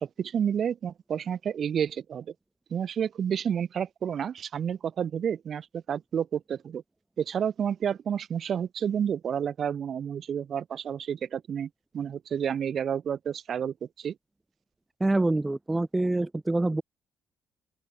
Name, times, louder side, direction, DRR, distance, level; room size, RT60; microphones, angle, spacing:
voice 1, 0.0-2.3 2.7-6.8 7.2-11.7 11.9-14.1, right 8 dB, 55° right, 1.1 m, -30 dB
voice 2, 15.0-16.8, right 2 dB, 15° right, 0.5 m, -26 dB
open air
cardioid pair, 90°, 0 cm